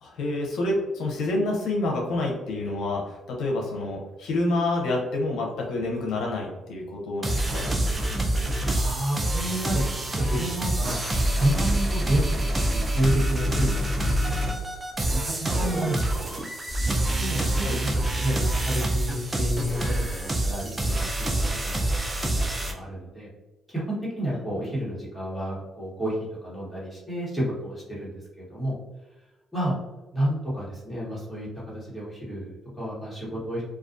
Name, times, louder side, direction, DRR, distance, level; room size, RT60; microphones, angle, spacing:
voice 1, 0.0-7.7 17.6-18.5, left 2 dB, 80° left, -2 dB, 0.6 m, -28 dB
sound 1, 7.2-22.7, right 1 dB, 20° right, 0.5 m, -26 dB
voice 2, 8.7-9.9 10.2-11.0 11.3-14.6 15.1-16.2 17.2-17.6 18.2-18.4 18.6-23.3 23.7-26.1 26.4-28.7 29.5-29.7 30.1-31.5 31.7-33.6, equal, 5° left, -7 dB, 1.2 m, -30 dB
2.4 x 2.2 x 2.5 m, 1.1 s
cardioid pair, 90°, 0 cm